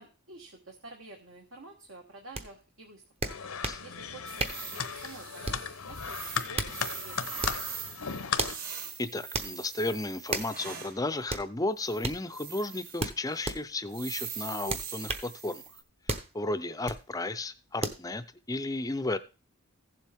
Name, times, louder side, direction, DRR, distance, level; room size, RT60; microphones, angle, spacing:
voice 1, 0.0-3.0 3.3-3.4 3.8-6.2 6.5-7.5, right 3 dB, 60° right, 1.5 m, -50 dB
sound 1, 2.3-2.5 3.2-3.8 4.4-4.7 5.4-5.7 6.3-6.8 7.4-7.7 8.4-8.6 9.3-9.5 10.3-10.5 11.3-11.5 12.0-12.2 13.0-13.6 14.7-15.3 16.1-16.3 16.8-17.0 17.8-18.0, right 2 dB, 30° right, 1.0 m, -33 dB
sound 2, 3.3-8.6, left 6 dB, 80° left, 0.9 m, -36 dB
sound 3, 4.3-11.0 11.8-13.1 13.4-13.5 13.9-15.8, right 7 dB, 45° right, 2.0 m, -42 dB
voice 2, 9.0-15.6 16.3-19.2, left 2 dB, 15° left, 0.6 m, -33 dB
15.5 x 7.5 x 3.6 m
head